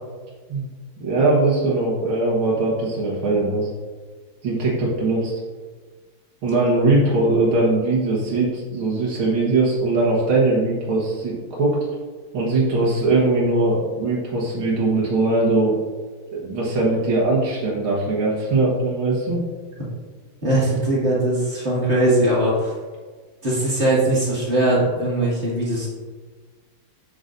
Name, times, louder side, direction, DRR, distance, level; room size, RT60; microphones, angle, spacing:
voice 1, 1.0-3.7 4.4-5.3 6.4-11.8 12.3-15.8 16.3-19.4, right 2 dB, 75° right, -5 dB, 2.1 m, -20 dB
voice 2, 20.4-22.7 23.4-25.9, right 1 dB, 30° right, -7 dB, 2.5 m, -20 dB
7.9 x 7.9 x 2.6 m, 1.4 s
omnidirectional pair, 2.4 m